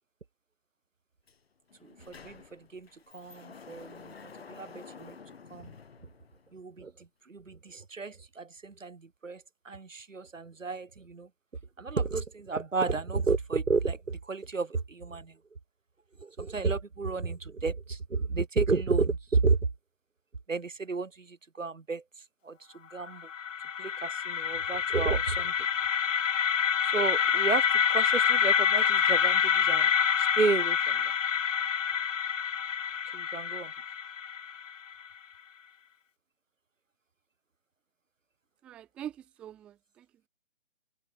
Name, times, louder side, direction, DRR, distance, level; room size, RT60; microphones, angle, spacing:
Sliding door, 1.3-1.4 1.7-6.7, left 5 dB, 50° left, 6.4 m, -50 dB
voice 1, 1.8-2.9 3.1-5.2 5.5-5.7 6.5-6.9 7.3-11.3 11.8-15.3 16.2-19.6 20.5-22.0 22.4-23.3 23.8-25.5 26.9-29.9 30.2-31.0 33.1-33.7, right 4 dB, 70° right, 1.7 m, -32 dB
sound 1, 23.1-35.0, left 7 dB, 70° left, 0.6 m, -27 dB
voice 2, 38.6-40.3, right 10 dB, 5° right, 0.9 m, -44 dB
figure-of-eight pair, 150°, 40 cm